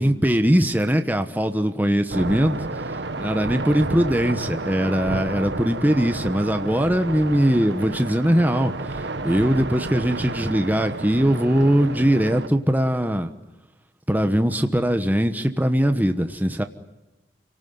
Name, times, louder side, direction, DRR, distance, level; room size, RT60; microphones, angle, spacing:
voice 1, 0.0-13.3 14.1-16.6, equal, 10° right, 7 dB, 1.1 m, -21 dB
sound 1, 2.1-12.5, right 2 dB, 80° right, 1.5 m, -31 dB
29.5 x 18.5 x 9.5 m, 1.1 s
head